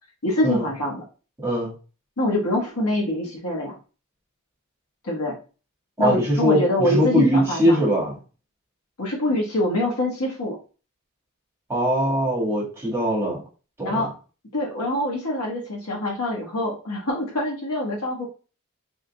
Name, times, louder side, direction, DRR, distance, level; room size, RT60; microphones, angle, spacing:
voice 1, 0.2-1.0 2.2-3.8 5.0-5.4 6.0-7.8 9.0-10.6 13.8-14.1 14.5-18.3, left 1 dB, 85° left, -1 dB, 1.4 m, -25 dB
voice 2, 1.4-1.7 6.0-8.2 11.7-13.4 13.8-14.0, equal, 10° right, -5 dB, 1.6 m, -21 dB
3.9 x 3.7 x 2.2 m, 0.35 s
head